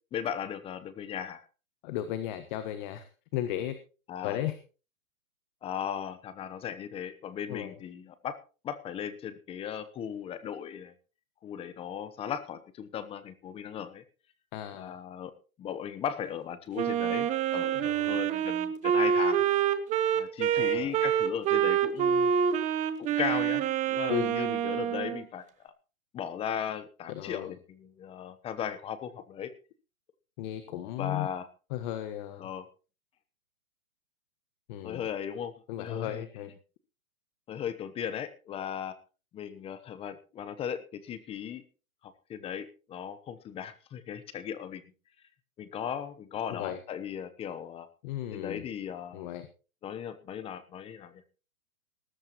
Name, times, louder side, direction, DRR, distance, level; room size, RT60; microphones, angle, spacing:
voice 1, 0.1-1.4 4.1-4.4 5.6-8.4 8.6-10.9 11.4-14.0 14.7-15.3 15.6-19.4 20.1-22.3 23.0-25.7 26.1-29.5 31.0-31.5 32.4-32.7 34.8-36.3 37.5-38.9 39.3-41.6 42.0-44.8 45.6-47.9 48.3-49.3 49.8-51.2, left 8 dB, 15° left, 13 dB, 1.0 m, -37 dB
voice 2, 1.8-3.8 4.2-4.6 7.5-7.7 14.5-15.0 17.7-18.2 20.5-21.0 24.1-24.3 27.1-27.6 30.4-31.3 31.7-32.5 34.7-35.1 35.7-36.5 46.5-46.8 48.0-48.6 49.1-49.5, left 12 dB, 35° left, 10 dB, 1.4 m, -35 dB
Wind instrument woodwind instrument, 16.8-25.2, right 9 dB, 15° right, 1.1 m, -27 dB
19.5 x 13.0 x 3.1 m, 0.35 s
hypercardioid pair, 140°, 42 cm